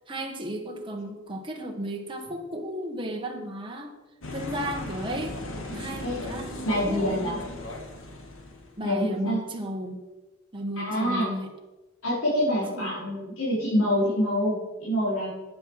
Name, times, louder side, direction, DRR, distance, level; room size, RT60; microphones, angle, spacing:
voice 1, 0.1-3.9 4.3-5.4 5.7-7.6 8.8-10.0 10.5-11.5 12.7-12.9, equal, 25° right, 1 dB, 1.5 m, -34 dB
sound 1, 4.2-8.8, left 2 dB, 70° left, 1.9 m, -37 dB
voice 2, 6.6-7.4 8.8-9.4 10.8-11.3 12.0-15.3, equal, 85° left, -7 dB, 4.2 m, -26 dB
12.0 x 9.0 x 4.8 m, 1.1 s
head